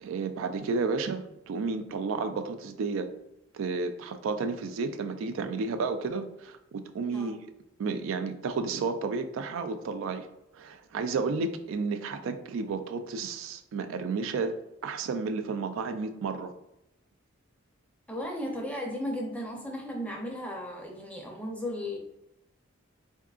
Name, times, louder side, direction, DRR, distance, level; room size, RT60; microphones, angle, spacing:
voice 1, 0.0-3.1 3.5-7.5 7.8-10.3 10.5-16.5, right 4 dB, 65° right, 8 dB, 0.3 m, -32 dB
voice 2, 18.1-22.0, left 1 dB, 5° left, 0 dB, 0.5 m, -35 dB
3.6 x 3.5 x 2.4 m, 0.84 s
head